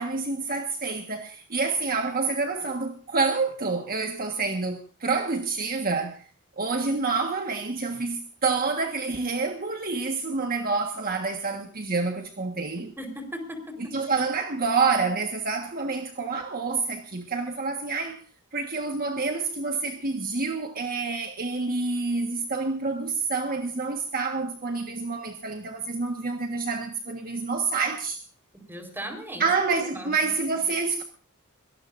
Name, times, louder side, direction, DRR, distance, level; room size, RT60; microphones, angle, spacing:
voice 1, 0.0-6.3 6.6-12.9 13.9-18.2 18.5-28.2 29.4-31.0, right 4 dB, 40° right, 1.5 m, -28 dB
voice 2, 13.0-14.0 28.5-29.5 29.8-30.3, equal, 10° right, 4.4 m, -37 dB
23.0 x 18.5 x 2.6 m
head